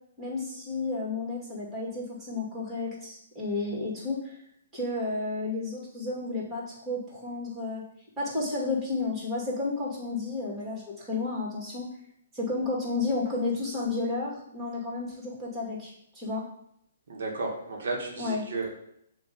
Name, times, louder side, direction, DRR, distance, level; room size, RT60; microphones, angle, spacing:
voice 1, 0.2-4.4 4.7-7.8 8.2-11.9 12.3-16.4 18.2-18.5, left 3 dB, 15° right, -5 dB, 2.5 m, -32 dB
voice 2, 17.1-18.7, right 3 dB, 70° right, 0 dB, 1.7 m, -33 dB
7.0 x 3.1 x 5.2 m, 0.74 s
hypercardioid pair, 145°, 0 cm